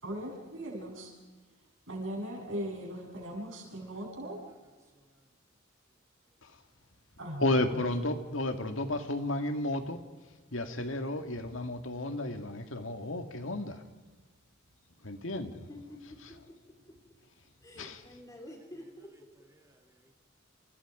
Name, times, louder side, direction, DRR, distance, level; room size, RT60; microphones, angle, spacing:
voice 1, 0.0-1.1 1.9-4.4 7.2-8.1, right 1 dB, 70° right, 7.3 m, -39 dB
voice 2, 3.8-5.3 5.9-6.0 6.2-6.4 6.7-6.8 18.0-18.2 19.4-20.1, right 1 dB, 15° right, 2.8 m, -67 dB
voice 3, 7.4-10.0 10.5-13.8 15.0-15.5 17.8-18.0, left 1 dB, 75° left, 2.1 m, -32 dB
voice 4, 15.3-17.2 17.6-19.5, left 1 dB, 15° left, 4.0 m, -50 dB
28.5 x 28.5 x 5.1 m
head